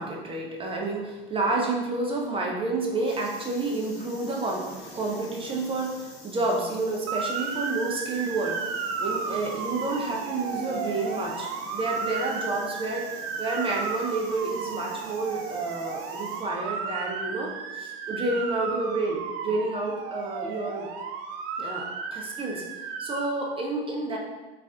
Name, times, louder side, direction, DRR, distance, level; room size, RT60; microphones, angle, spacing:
voice 1, 0.0-8.6 9.0-13.1 13.4-20.9 21.6-22.6 23.0-24.2, right 2 dB, 15° right, -1 dB, 0.8 m, -30 dB
sound 1, 3.0-16.4, left 1 dB, 80° left, 1.0 m, -47 dB
Motor vehicle (road) / Siren, 7.1-23.3, right 5 dB, 45° right, 0.5 m, -34 dB
3.2 x 2.6 x 3.5 m, 1.2 s
hypercardioid pair, 80°, 31 cm